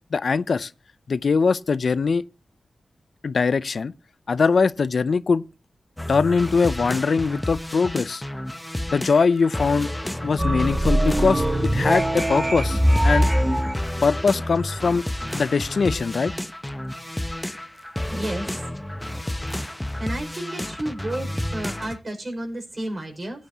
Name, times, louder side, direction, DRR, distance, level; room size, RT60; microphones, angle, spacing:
voice 1, 0.1-0.7 1.1-2.2 3.2-3.9 4.3-5.4 6.1-8.2 8.9-9.9 10.2-13.3 14.0-15.0 15.3-16.3, left 5 dB, 75° left, 0.4 m, -21 dB
sound 1, 6.0-22.0, left 1 dB, 10° left, 0.8 m, -31 dB
sound 2, 10.4-13.7, right 1 dB, 15° right, 1.3 m, -21 dB
voice 2, 18.1-18.6 18.9-19.0 20.0-21.3 21.5-23.5, right 1 dB, 50° right, 5.2 m, -31 dB
16.5 x 9.5 x 2.8 m
cardioid pair, 40°, 0 cm